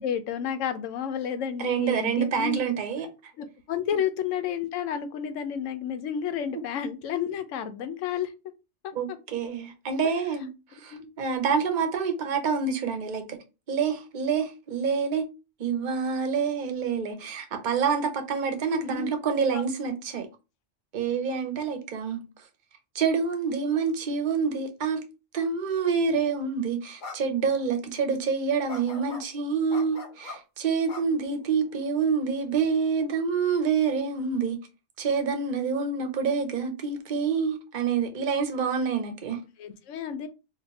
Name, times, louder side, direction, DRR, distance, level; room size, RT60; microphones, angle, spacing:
voice 1, 0.0-2.6 3.4-8.3 8.8-9.2 10.9-11.1 18.7-19.1 19.5-19.7 39.6-40.3, left 8 dB, 90° left, 0.9 m, -31 dB
voice 2, 1.6-3.1 8.9-10.5 10.8-13.4 13.7-15.3 15.6-20.3 20.9-22.2 22.9-25.0 25.3-34.6 35.0-39.4, right 5 dB, 50° right, 0.7 m, -27 dB
sound 1, 26.2-26.4 27.0-27.2 27.5-27.7 28.7-29.2 29.7-30.4 30.9-31.7, left 3 dB, 50° left, 0.7 m, -40 dB
2.6 x 2.5 x 3.9 m
omnidirectional pair, 1.3 m